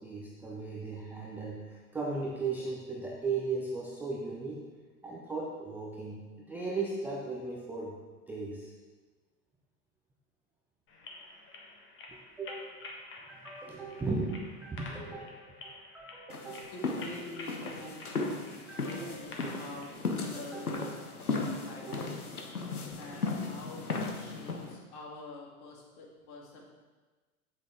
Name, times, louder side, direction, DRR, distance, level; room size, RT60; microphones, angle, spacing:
voice 1, 0.0-4.7 5.0-8.0 8.3-8.7 12.1-12.7 13.3-16.7 17.6-17.9 18.7-19.2 20.2-22.1, right 3 dB, 5° right, -3 dB, 0.3 m, -37 dB
sound 1, 10.9-20.0, left 3 dB, 25° left, 1.5 m, -49 dB
sound 2, 16.3-24.7, left 3 dB, 85° left, 1.0 m, -36 dB
voice 2, 16.7-18.1 18.6-19.9 20.2-20.7 21.2-22.3 23.0-26.7, left 1 dB, 50° left, -1 dB, 2.3 m, -46 dB
8.3 x 7.9 x 3.6 m, 1.3 s
figure-of-eight pair, 90°, 44 cm